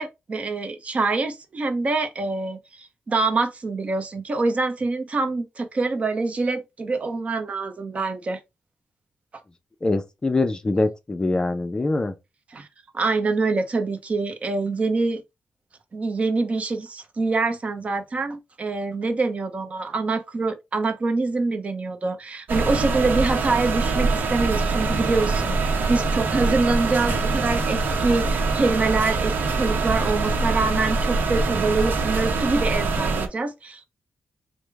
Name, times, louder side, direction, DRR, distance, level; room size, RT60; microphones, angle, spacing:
voice 1, 0.0-8.4 12.5-12.7 12.9-15.2 15.9-33.8, right 3 dB, 40° right, 0.7 m, -25 dB
voice 2, 9.8-12.1, left 2 dB, 25° left, 0.5 m, -23 dB
sound 1, 22.5-33.3, right 3 dB, 75° right, 0.8 m, -24 dB
4.8 x 2.1 x 3.4 m
wide cardioid pair, 120°, 3 cm